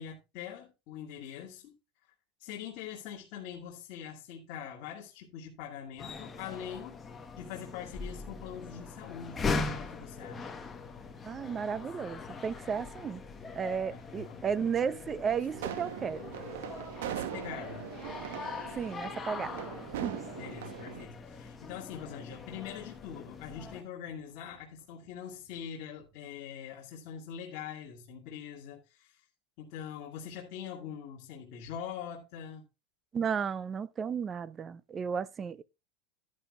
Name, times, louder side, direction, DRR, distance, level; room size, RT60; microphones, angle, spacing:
voice 1, 0.0-1.7 2.4-7.0 7.4-10.5 13.9-14.4 17.0-17.9 20.3-29.2 29.6-32.6, left 8 dB, 45° left, 2.2 m, -43 dB
sound 1, 6.0-23.8, left 4 dB, 15° left, 1.1 m, -41 dB
voice 2, 11.2-13.2 13.5-16.3 18.8-19.6 20.0-20.2 33.1-35.6, right 6 dB, 20° right, 0.5 m, -33 dB
sound 2, 15.5-21.0, right 12 dB, 85° right, 0.9 m, -40 dB
sound 3, 19.0-26.5, right 5 dB, 60° right, 4.7 m, -65 dB
11.5 x 11.0 x 2.4 m
supercardioid pair, 165°, 0 cm